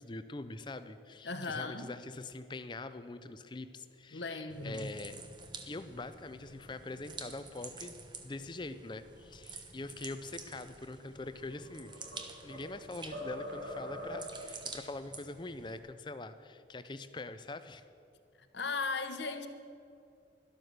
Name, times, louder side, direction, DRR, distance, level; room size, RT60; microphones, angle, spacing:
voice 1, 0.0-5.2 5.7-8.0 8.2-11.9 12.4-17.8, left 2 dB, 25° left, 11 dB, 0.5 m, -43 dB
voice 2, 1.2-1.9 4.1-4.9 18.5-19.5, left 4 dB, 70° left, 8 dB, 1.1 m, -37 dB
sound 1, 4.5-15.8, right 4 dB, 25° right, 0.9 m, -49 dB
sound 2, 11.4-12.8 13.1-14.5, equal, 85° right, 3.8 m, -43 dB
12.5 x 12.0 x 6.6 m, 2.5 s
head